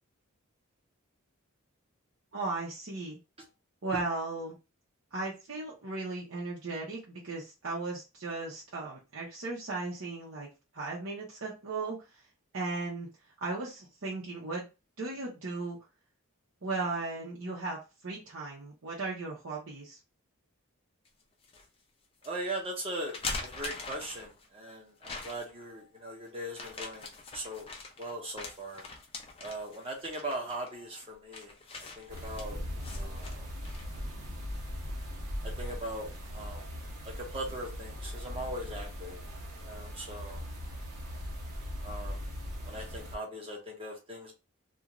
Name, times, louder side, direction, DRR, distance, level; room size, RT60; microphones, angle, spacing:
voice 1, 2.3-3.2 3.8-4.5 5.1-10.5 10.7-12.0 12.5-13.1 13.4-14.7 15.0-15.8 16.6-20.0, right 3 dB, 65° right, 0.8 m, -36 dB
sound 1, 21.0-21.7 22.2-22.3 22.9-24.5 25.0-25.6 26.5-34.0, left 3 dB, 25° left, 0.4 m, -42 dB
voice 2, 22.2-23.1 23.4-27.7 28.0-28.8 29.4-31.5 32.0-32.6 32.9-33.5 35.4-36.6 37.0-39.2 39.7-40.4 41.8-42.2 42.7-44.3, right 1 dB, 25° right, 0.8 m, -39 dB
sound 2, 32.1-43.2, equal, 90° right, 0.9 m, -39 dB
2.5 x 2.4 x 3.0 m
head